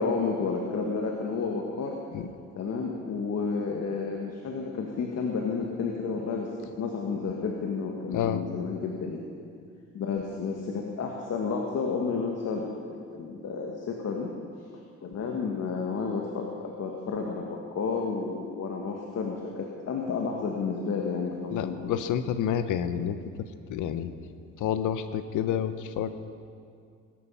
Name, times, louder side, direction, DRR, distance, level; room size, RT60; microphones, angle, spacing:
voice 1, 0.0-2.0 2.5-6.5 6.8-9.2 9.9-14.3 14.7-21.8, left 5 dB, 60° left, 1 dB, 1.6 m, -31 dB
voice 2, 21.5-23.2 23.7-24.1 24.6-26.1, left 9 dB, 80° left, 11 dB, 0.9 m, -29 dB
19.0 x 10.5 x 5.6 m, 2.3 s
cardioid pair, 90°, 30 cm